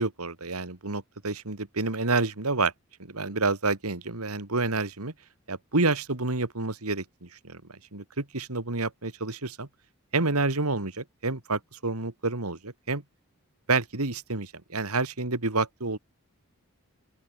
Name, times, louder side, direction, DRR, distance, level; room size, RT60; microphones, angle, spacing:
voice 1, 0.0-2.7 3.0-5.1 5.5-9.7 10.1-13.0 13.7-16.0, right 3 dB, 85° right, 2.5 m, -29 dB
open air
head